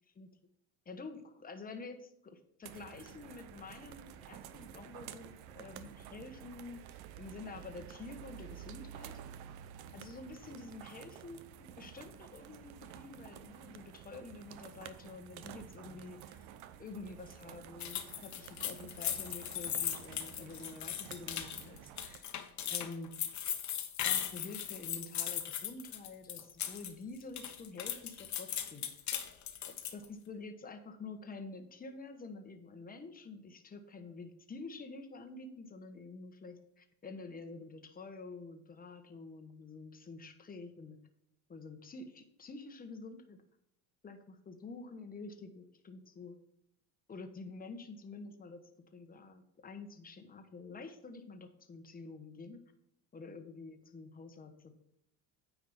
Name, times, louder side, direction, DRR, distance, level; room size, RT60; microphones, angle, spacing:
voice 1, 0.8-6.8 7.2-9.2 9.9-16.5 16.8-22.4 22.7-23.1 24.0-28.8 29.7-41.0 41.5-43.4 44.0-46.4 47.1-52.6 53.1-54.7, left 3 dB, 20° left, 7 dB, 1.2 m, -48 dB
sound 1, 2.6-22.2, right 10 dB, 60° right, 0.8 m, -51 dB
sound 2, 17.8-26.9 27.2-30.0, left 10 dB, 40° left, 1.2 m, -38 dB
9.4 x 4.8 x 5.7 m, 0.77 s
supercardioid pair, 115°, 42 cm